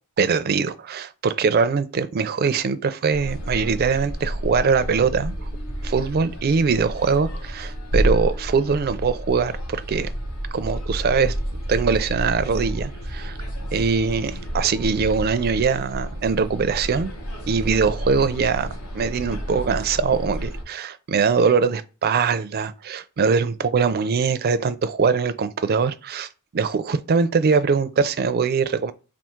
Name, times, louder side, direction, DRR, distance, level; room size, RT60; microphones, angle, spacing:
voice 1, 0.2-5.3 5.8-10.1 10.5-11.3 11.7-13.4 13.7-17.1 17.5-18.7 18.9-28.9, right 5 dB, 45° right, 0.4 m, -22 dB
sound 1, 3.1-20.6, equal, 70° left, 1.1 m, -30 dB
3.6 x 2.4 x 4.4 m
head